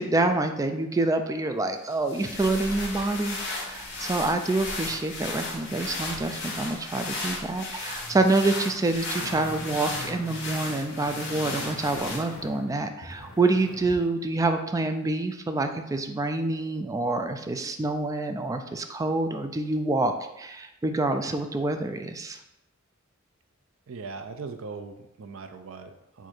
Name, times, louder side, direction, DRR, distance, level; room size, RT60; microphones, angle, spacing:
voice 1, 0.0-22.4, right 2 dB, 15° right, 7 dB, 0.3 m, -27 dB
sound 1, 1.9-12.5, left 2 dB, 60° left, 1.3 m, -35 dB
sound 2, 9.2-14.1 14.4-14.5, left 1 dB, 75° left, 1.0 m, -42 dB
voice 2, 23.9-26.3, right 4 dB, 75° right, 8 dB, 0.5 m, -40 dB
4.6 x 2.6 x 4.3 m, 0.87 s
head